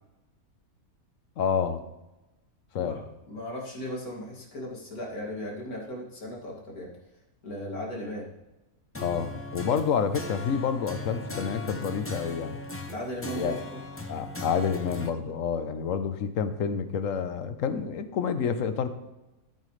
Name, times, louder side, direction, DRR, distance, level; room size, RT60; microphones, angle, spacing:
voice 1, 1.4-1.8 2.7-3.0 9.0-12.6 13.3-13.6 14.1-18.9, left 7 dB, 65° left, 10 dB, 1.2 m, -28 dB
voice 2, 3.3-6.9 7.4-8.3 12.9-13.6, equal, 90° left, -2 dB, 2.9 m, -36 dB
sound 1, 8.9-15.1, left 2 dB, 15° left, 0.5 m, -38 dB
13.5 x 8.4 x 3.3 m, 1.0 s
omnidirectional pair, 1.5 m